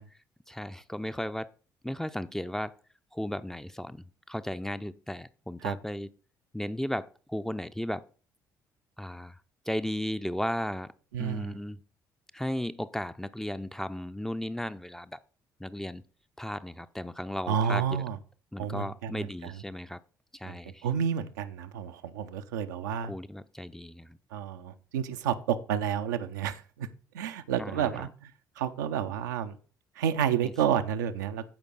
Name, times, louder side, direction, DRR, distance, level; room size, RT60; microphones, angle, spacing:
voice 1, 0.5-1.5 1.8-2.7 3.1-6.1 6.5-8.0 9.0-9.4 9.7-10.9 11.2-11.8 12.3-15.2 15.6-16.0 16.4-17.9 18.5-20.0 20.3-20.9 23.0-24.2 27.6-28.1 30.4-30.5, left 1 dB, 5° left, 12 dB, 0.5 m, -35 dB
voice 2, 11.1-11.6 17.5-18.2 18.6-19.5 20.4-23.1 24.3-26.9 27.1-28.3 28.6-29.6 30.0-31.4, right 8 dB, 75° right, 8 dB, 0.6 m, -30 dB
14.5 x 5.2 x 4.0 m, 0.39 s
figure-of-eight pair, 45°, 10 cm